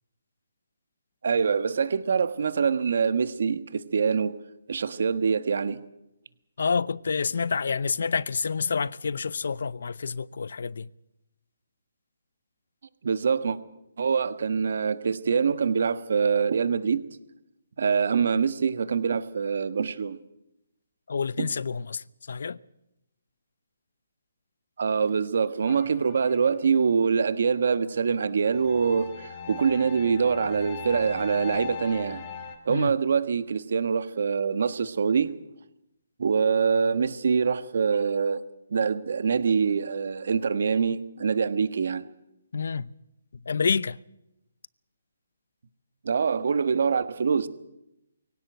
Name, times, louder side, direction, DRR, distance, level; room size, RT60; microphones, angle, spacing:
voice 1, 1.2-4.3 4.7-5.8 13.0-13.6 14.0-17.0 17.8-20.2 21.4-21.5 24.8-32.2 32.6-35.3 36.2-38.4 38.7-42.0 46.0-47.5, right 6 dB, 60° right, 1.3 m, -24 dB
voice 2, 6.6-10.9 21.1-22.6 32.7-32.9 42.5-42.9 43.5-44.0, left 5 dB, 65° left, 0.7 m, -28 dB
sound 1, 25.7-27.1 28.4-32.6, left 7 dB, 30° left, 3.1 m, -40 dB
23.0 x 17.0 x 7.9 m
hypercardioid pair, 160°, 0 cm